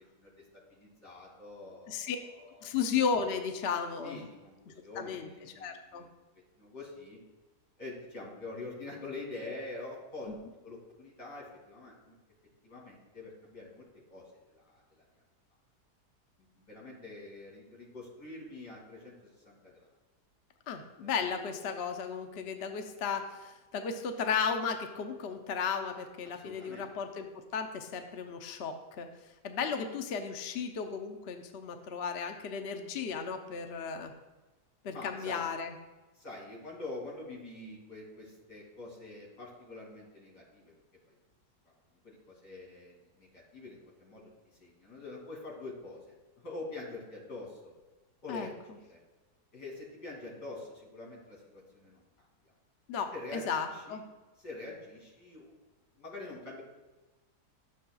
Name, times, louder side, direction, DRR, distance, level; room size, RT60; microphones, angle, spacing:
voice 1, 0.7-2.7 4.0-6.2 6.6-7.2 7.8-10.3 10.6-12.1 12.6-13.8 14.1-15.0 16.5-19.8 21.0-21.3 26.2-26.9 34.9-35.4 36.1-40.7 41.1-41.2 42.0-44.3 44.6-47.7 48.2-49.0 49.5-52.0 52.4-52.5 53.1-54.0 54.4-55.5 56.0-56.6, left 2 dB, 75° left, -3 dB, 3.2 m, -45 dB
voice 2, 2.6-4.2 5.0-5.3 5.6-6.1 10.3-10.4 20.7-27.3 27.5-29.1 29.4-34.1 34.8-35.7 48.3-48.8 52.9-54.0, left 6 dB, 55° left, 6 dB, 0.7 m, -34 dB
12.5 x 7.4 x 2.3 m, 1.1 s
omnidirectional pair, 1.8 m